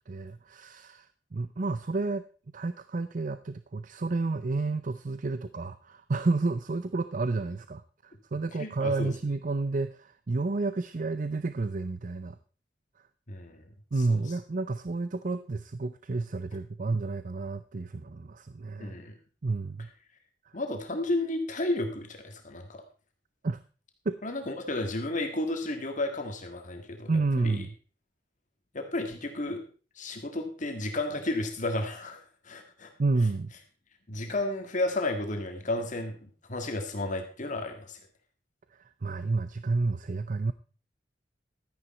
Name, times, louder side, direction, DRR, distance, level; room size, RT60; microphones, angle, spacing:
voice 1, 0.1-2.3 2.5-12.4 13.9-19.0 19.4-19.9 23.4-23.6 24.1-24.2 27.1-27.7 33.0-33.5 39.0-40.5, right 3 dB, 45° right, 12 dB, 0.6 m, -30 dB
voice 2, 8.6-9.1 13.3-13.7 14.1-14.2 18.8-19.1 20.5-22.8 24.2-27.6 28.7-29.6 29.9-32.9 34.1-38.0, left 2 dB, 45° left, 5 dB, 1.8 m, -32 dB
13.0 x 10.0 x 4.3 m, 0.38 s
head